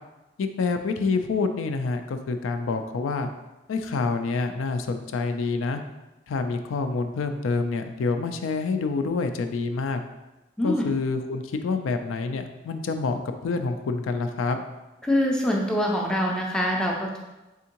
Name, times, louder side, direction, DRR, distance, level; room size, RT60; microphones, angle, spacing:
voice 1, 0.4-3.3 3.7-5.8 6.3-10.0 10.6-14.6, left 4 dB, 90° left, 7 dB, 0.3 m, -27 dB
voice 2, 10.6-10.9 15.0-17.2, equal, 5° left, -2 dB, 0.4 m, -24 dB
3.6 x 3.4 x 2.9 m, 1.0 s
head